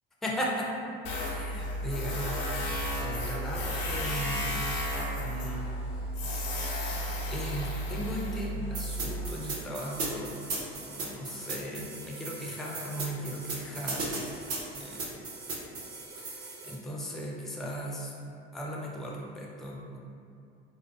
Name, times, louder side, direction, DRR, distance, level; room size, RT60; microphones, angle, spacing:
voice 1, 0.2-0.8 1.2-2.3 3.0-4.8 5.2-5.7 7.3-10.4 10.7-14.4 14.8-15.0 16.2-18.1 18.5-20.0, equal, ahead, -3 dB, 0.3 m, -37 dB
Tools, 1.1-9.3, equal, 85° left, 0.5 m, -33 dB
sound 1, 8.7-16.7, right 3 dB, 60° right, 0.7 m, -37 dB
2.5 x 2.3 x 2.3 m, 2.5 s
hypercardioid pair, 65°, 29 cm